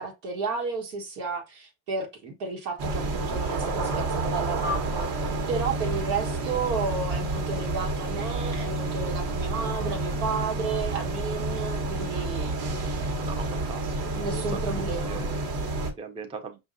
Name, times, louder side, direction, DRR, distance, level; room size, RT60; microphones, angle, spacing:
voice 1, 0.0-13.0 14.1-15.3, right 4 dB, 80° right, 1.4 m, -32 dB
sound 1, 2.8-15.9, right 2 dB, 50° right, 1.3 m, -29 dB
voice 2, 13.2-15.4 16.0-16.6, right 5 dB, 10° right, 0.5 m, -40 dB
5.4 x 2.5 x 2.6 m
supercardioid pair, 100°, 49 cm